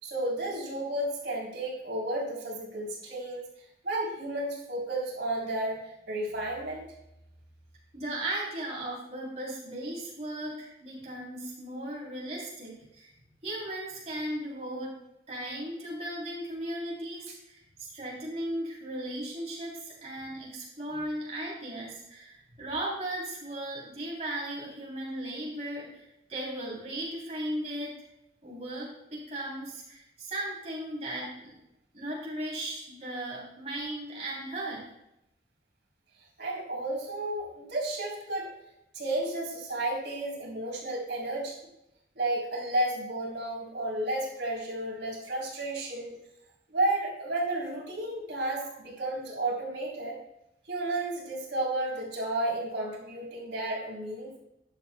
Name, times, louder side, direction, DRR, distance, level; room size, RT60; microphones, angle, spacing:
voice 1, 0.0-3.4 3.8-6.8 36.4-38.5 38.9-41.6 42.2-46.2 46.7-50.2 50.7-54.4, right 1 dB, 85° right, -3 dB, 3.6 m, -32 dB
voice 2, 7.9-13.1 13.4-14.9 15.3-26.0 26.3-27.9 28.4-31.6 31.9-34.8, right 1 dB, 35° right, -4 dB, 3.4 m, -36 dB
12.5 x 10.5 x 2.3 m, 0.85 s
head